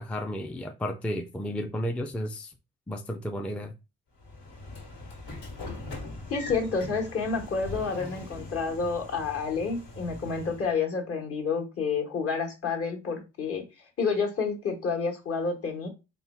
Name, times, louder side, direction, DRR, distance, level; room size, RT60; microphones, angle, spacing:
voice 1, 0.0-2.5 2.9-3.7, equal, 5° left, 0.4 m, -33 dB
Train / Sliding door, 4.2-10.7, left 2 dB, 85° left, 1.7 m, -41 dB
voice 2, 6.3-13.6 14.0-15.9, left 5 dB, 50° left, 1.3 m, -29 dB
3.7 x 2.3 x 4.2 m
cardioid pair, 90°, 30 cm